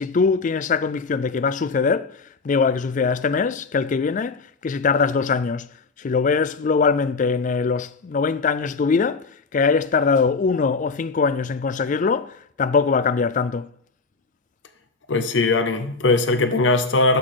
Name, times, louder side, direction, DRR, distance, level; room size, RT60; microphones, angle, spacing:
voice 1, 0.0-13.7, left 5 dB, 40° left, 0.3 m, -22 dB
voice 2, 15.1-17.2, left 3 dB, 65° left, 0.7 m, -20 dB
11.0 x 3.9 x 6.5 m
head